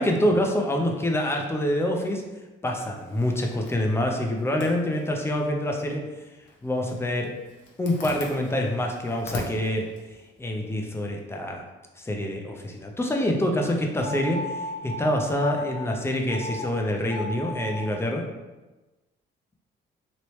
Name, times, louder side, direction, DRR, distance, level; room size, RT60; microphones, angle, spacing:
voice 1, 0.0-2.2 2.6-6.1 6.6-7.3 7.8-9.9 10.4-11.6 12.0-18.3, left 1 dB, 10° left, 1 dB, 0.6 m, -26 dB
Zipper (clothing), 3.0-11.1, left 2 dB, 70° left, 0.7 m, -44 dB
sound 1, 14.0-15.8 16.3-16.7 17.0-17.9, left 1 dB, 70° right, 1.0 m, -35 dB
3.0 x 2.9 x 3.1 m, 1.1 s
cardioid pair, 90°, 20 cm